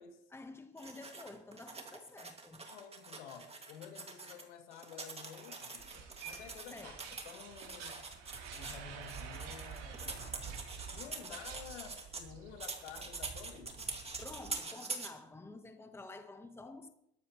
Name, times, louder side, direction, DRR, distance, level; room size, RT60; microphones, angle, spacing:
voice 1, 0.3-2.7 6.7-7.0 11.0-11.6 14.2-16.9, left 2 dB, 5° left, 1.1 m, -50 dB
sound 1, 0.8-4.4 4.7-12.2 12.6-15.1, right 3 dB, 15° right, 2.1 m, -45 dB
voice 2, 2.7-7.0 7.2-8.1 8.5-10.6 10.9-13.9, left 7 dB, 90° left, 2.5 m, -51 dB
sound 2, 5.2-11.7 11.9-13.2, right 7 dB, 90° right, 3.4 m, -52 dB
sound 3, 5.8-14.6, right 6 dB, 45° right, 4.1 m, -52 dB
21.5 x 12.0 x 3.1 m
supercardioid pair, 105°, 34 cm